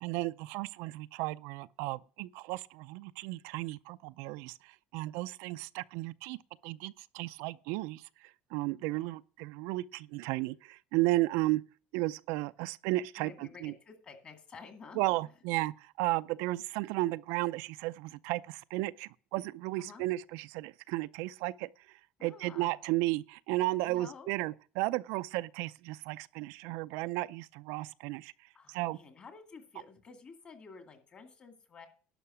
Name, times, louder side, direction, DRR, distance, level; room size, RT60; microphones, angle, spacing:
voice 1, 0.0-6.4 6.6-8.0 8.5-11.6 11.9-13.7 15.0-21.7 22.2-28.3 28.7-29.0, right 19 dB, 80° right, 0.4 m, -34 dB
voice 2, 8.8-9.1 13.2-15.0 19.8-20.0 22.2-22.8 23.9-24.3 28.5-31.9, left 5 dB, 30° left, 2.2 m, -51 dB
11.5 x 5.7 x 7.1 m
cardioid pair, 160°, 4 cm